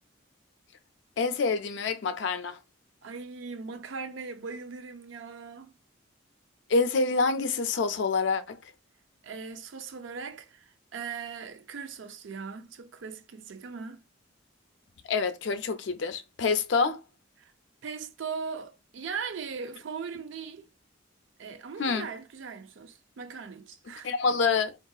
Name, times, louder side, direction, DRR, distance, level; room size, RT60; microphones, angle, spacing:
voice 1, 1.2-2.6 6.7-8.6 15.1-17.0 21.8-22.1 24.0-24.8, left 4 dB, 60° left, 0.4 m, -27 dB
voice 2, 3.0-5.7 9.2-14.0 17.4-17.5 17.8-20.7 21.4-24.1, right 5 dB, 70° right, 0.4 m, -39 dB
3.7 x 2.3 x 2.3 m
head